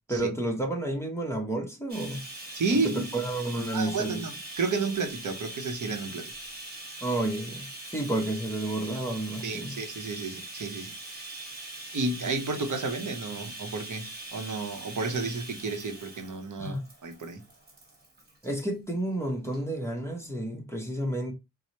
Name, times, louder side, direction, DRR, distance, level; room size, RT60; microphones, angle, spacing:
voice 1, 0.1-2.2 2.7-4.2 7.0-9.8 16.6-16.8 18.4-21.3, right 1 dB, 10° left, 0.7 m, -31 dB
Bathtub (filling or washing), 1.9-18.5 19.5-19.6 20.0-20.1, right 2 dB, 30° right, 1.1 m, -42 dB
voice 2, 2.5-3.0 3.7-6.3 9.4-11.5 11.9-17.4, right 3 dB, 60° right, 0.7 m, -32 dB
4.4 x 2.0 x 2.8 m
wide cardioid pair, 120°, 34 cm